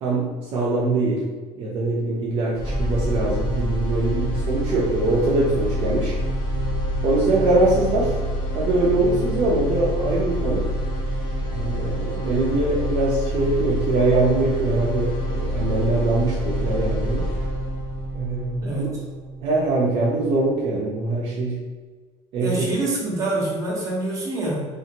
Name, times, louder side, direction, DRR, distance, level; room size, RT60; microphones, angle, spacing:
voice 1, 0.0-1.2 1.6-6.2 7.0-8.1 8.5-10.7 11.5-17.3 18.1-18.9 19.4-21.6 22.3-22.6, right 2 dB, 50° right, -5 dB, 0.5 m, -22 dB
sound 1, 2.5-20.6, equal, 40° left, 1.4 m, -27 dB
voice 2, 18.6-19.1 22.4-24.6, right 2 dB, 25° right, -5 dB, 0.8 m, -26 dB
2.7 x 2.5 x 2.7 m, 1.4 s
cardioid pair, 150°, 13 cm